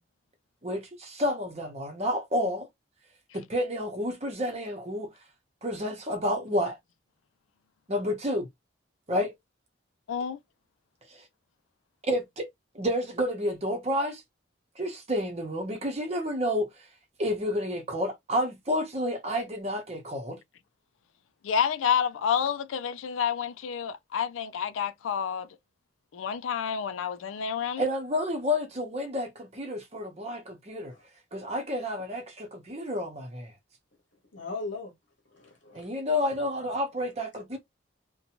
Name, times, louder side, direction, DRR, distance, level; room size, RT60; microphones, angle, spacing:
voice 1, 0.6-2.7 3.3-5.1 5.6-6.8 7.9-8.5 9.1-9.3 12.1-12.5 12.7-14.2 14.8-16.7 17.2-20.4 27.8-30.9 31.3-33.5 35.7-37.6, left 1 dB, 35° right, 0.8 m, -30 dB
voice 2, 10.1-10.4 21.4-25.5 26.1-27.8, left 7 dB, 90° left, 0.4 m, -29 dB
voice 3, 34.3-34.9 35.3-36.0, left 3 dB, 65° left, 0.9 m, -39 dB
2.7 x 2.2 x 2.8 m
head